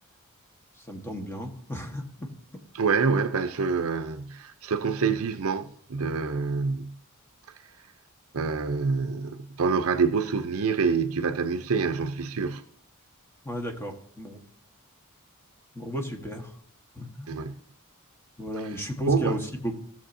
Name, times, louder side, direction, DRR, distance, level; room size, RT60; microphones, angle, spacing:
voice 1, 0.8-2.3 13.4-14.4 15.7-16.6 16.9-17.3 18.4-19.7, equal, 10° left, 1.4 m, -34 dB
voice 2, 2.7-7.0 8.3-12.6 17.3-17.5 19.0-19.4, right 5 dB, 70° right, 0.6 m, -26 dB
16.5 x 7.1 x 2.7 m
head